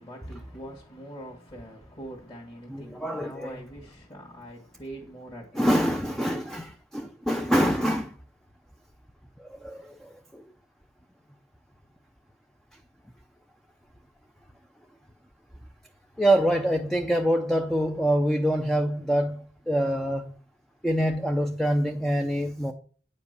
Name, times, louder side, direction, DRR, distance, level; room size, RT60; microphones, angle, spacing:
voice 1, 0.0-6.0, right 1 dB, 25° left, 1.9 m, -43 dB
voice 2, 2.7-3.6 5.5-8.2 9.4-10.4 16.2-20.3 20.8-22.7, equal, ahead, 0.6 m, -25 dB
9.5 x 5.2 x 6.8 m
head